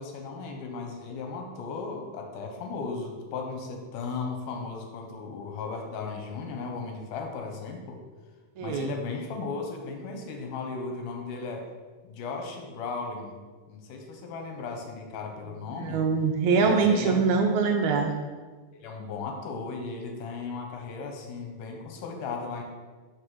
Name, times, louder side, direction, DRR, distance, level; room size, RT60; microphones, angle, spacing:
voice 1, 0.0-8.0 8.6-11.6 12.0-13.4 13.7-16.0 16.6-17.2 18.7-22.6, left 4 dB, 80° left, 2 dB, 2.5 m, -36 dB
voice 2, 8.6-8.9 15.8-18.1, right 5 dB, 80° right, 3 dB, 1.7 m, -23 dB
5.6 x 4.9 x 6.2 m, 1.4 s
omnidirectional pair, 3.6 m